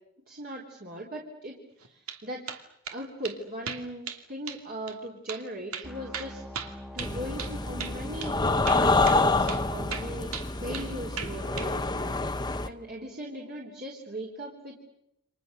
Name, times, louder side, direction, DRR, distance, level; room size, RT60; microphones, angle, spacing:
voice 1, 0.3-2.5 2.9-6.4 6.9-8.4 8.7-10.3 10.6-12.1 12.6-14.8, right 1 dB, 40° right, -1 dB, 3.8 m, -38 dB
sound 1, 1.8-2.2 2.5-3.0 3.2-3.4 3.7-4.2 4.5-4.6 4.9-5.0 5.3-5.4 5.7-7.5 7.8-8.0 8.2-8.3 8.7-9.2 9.5-9.6 9.9-10.9 11.2-11.7, right 7 dB, 75° right, 2.8 m, -37 dB
sound 2, 5.8-9.9, left 1 dB, ahead, 1.4 m, -43 dB
sound 3, 7.0-12.7, left 3 dB, 20° left, 1.0 m, -27 dB
30.0 x 26.5 x 6.8 m, 0.80 s
head